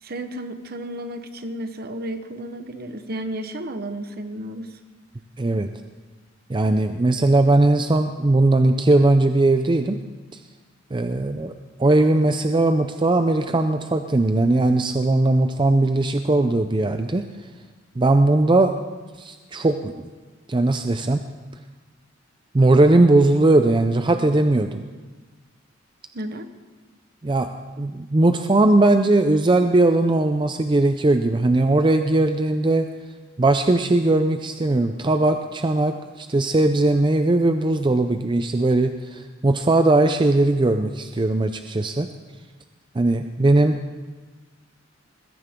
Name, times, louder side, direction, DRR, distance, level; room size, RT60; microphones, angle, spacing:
voice 1, 0.0-4.8 26.1-26.5, right 1 dB, 50° right, 9 dB, 1.1 m, -33 dB
voice 2, 5.4-5.7 6.5-10.0 10.3-10.4 10.9-11.5 11.8-17.3 18.0-18.7 19.2-19.9 20.5-21.2 22.5-24.8 27.2-27.5 27.8-32.9 33.4-42.1 42.9-43.8, right 2 dB, 25° right, 7 dB, 0.5 m, -19 dB
20.5 x 15.5 x 3.7 m, 1.3 s
head